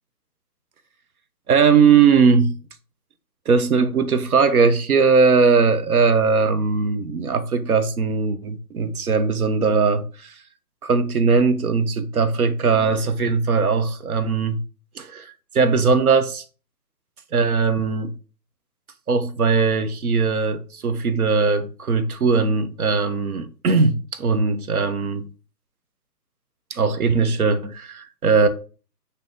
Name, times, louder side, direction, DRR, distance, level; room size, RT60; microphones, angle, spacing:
voice 1, 1.5-2.5 3.5-10.4 10.8-14.6 14.9-16.4 17.3-18.1 19.1-25.3 26.7-28.5, right 5 dB, 60° right, 0.6 m, -19 dB
3.8 x 2.7 x 3.5 m
hypercardioid pair, 165°, 50 cm